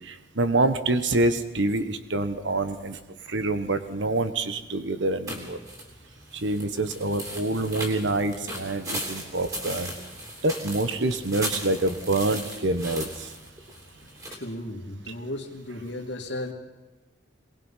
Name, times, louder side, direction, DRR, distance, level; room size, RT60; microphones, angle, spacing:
voice 1, 0.4-2.9 3.3-5.6 6.4-9.9 10.4-13.1, right 2 dB, 80° right, 10 dB, 1.4 m, -26 dB
sound 1, 5.3-14.3, right 1 dB, 20° right, 3.1 m, -37 dB
voice 2, 14.3-16.5, left 1 dB, 70° left, 2 dB, 2.5 m, -35 dB
23.5 x 19.5 x 5.8 m, 1.2 s
head